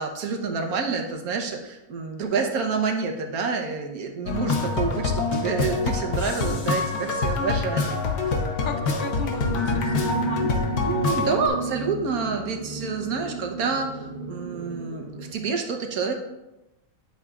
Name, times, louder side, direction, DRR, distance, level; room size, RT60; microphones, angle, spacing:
voice 1, 0.0-8.0 10.8-16.1, right 5 dB, 80° right, 3 dB, 1.5 m, -28 dB
sound 1, 4.3-11.5, left 4 dB, 85° left, 1.5 m, -26 dB
voice 2, 8.6-10.6, left 4 dB, 55° left, 7 dB, 0.6 m, -34 dB
sound 2, 9.3-15.3, right 3 dB, 55° right, 1.5 m, -33 dB
9.5 x 8.0 x 2.4 m, 0.93 s
omnidirectional pair, 1.5 m